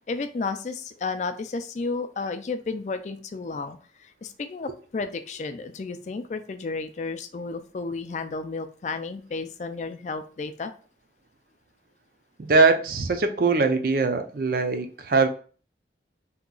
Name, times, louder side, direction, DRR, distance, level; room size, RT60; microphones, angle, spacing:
voice 1, 0.1-3.8 4.2-10.7, left 4 dB, 40° left, 8 dB, 0.3 m, -32 dB
voice 2, 12.4-15.3, right 4 dB, 55° right, 8 dB, 0.4 m, -21 dB
2.9 x 2.4 x 3.7 m, 0.39 s
head